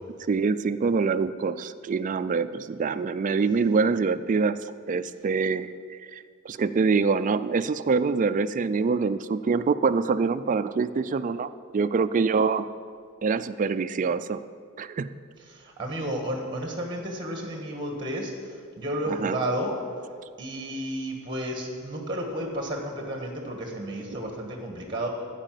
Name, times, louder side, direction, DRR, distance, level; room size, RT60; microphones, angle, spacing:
voice 1, 0.3-4.6 4.9-12.7 13.2-14.4 14.8-15.1 19.1-19.4, right 4 dB, 35° right, 12 dB, 0.3 m, -25 dB
voice 2, 15.5-18.3 18.8-19.8 20.4-25.1, right 1 dB, 20° right, 3 dB, 1.4 m, -32 dB
14.0 x 4.9 x 7.5 m, 2.2 s
head